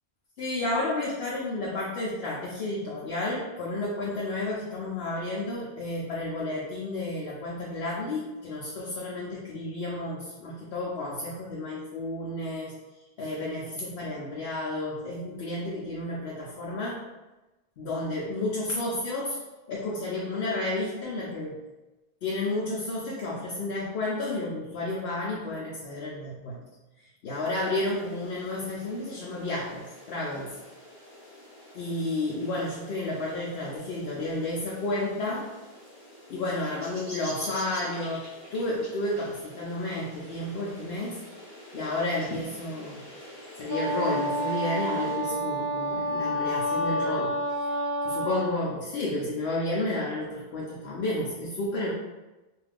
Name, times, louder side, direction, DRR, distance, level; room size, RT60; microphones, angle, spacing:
voice 1, 0.4-12.7 13.2-17.0 17.8-19.4 19.7-21.6 22.2-26.6 27.2-30.6 31.7-35.5 36.3-41.2 41.7-43.0 43.6-47.4 48.0-51.9, left 2 dB, 75° left, -5 dB, 0.8 m, -31 dB
sound 1, 27.8-45.2, equal, 20° left, 0.8 m, -47 dB
Wind instrument woodwind instrument, 43.7-48.6, equal, 70° right, 1.0 m, -29 dB
2.6 x 2.4 x 3.3 m, 1.1 s
omnidirectional pair, 1.0 m